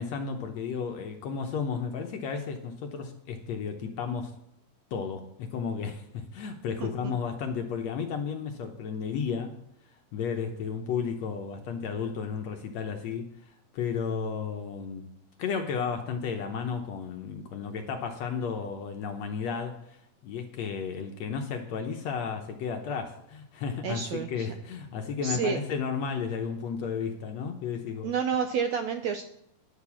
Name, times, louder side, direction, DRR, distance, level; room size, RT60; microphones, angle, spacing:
voice 1, 0.0-4.3 4.9-9.5 10.1-15.1 15.4-28.1, left 6 dB, 70° left, 4 dB, 1.8 m, -33 dB
voice 2, 23.8-24.5 25.2-25.6 28.0-29.2, right 6 dB, 75° right, 6 dB, 1.6 m, -29 dB
10.5 x 6.6 x 7.1 m, 0.77 s
omnidirectional pair, 3.8 m